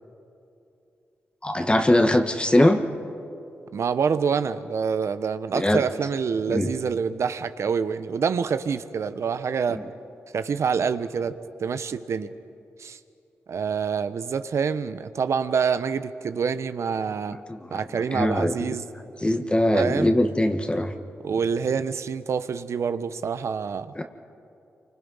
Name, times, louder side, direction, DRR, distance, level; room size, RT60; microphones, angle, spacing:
voice 1, 1.4-2.8 5.5-5.8 6.5-6.7 17.5-17.8 18.1-18.7 19.2-20.9 24.0-24.1, left 1 dB, 20° left, 5 dB, 1.8 m, -21 dB
voice 2, 3.7-9.8 10.3-12.3 12.8-13.0 13.5-17.4 17.7-18.8 19.7-20.1 21.2-23.9, right 6 dB, 70° right, 12 dB, 1.0 m, -26 dB
28.0 x 25.0 x 5.7 m, 2.6 s
supercardioid pair, 50°, 5 cm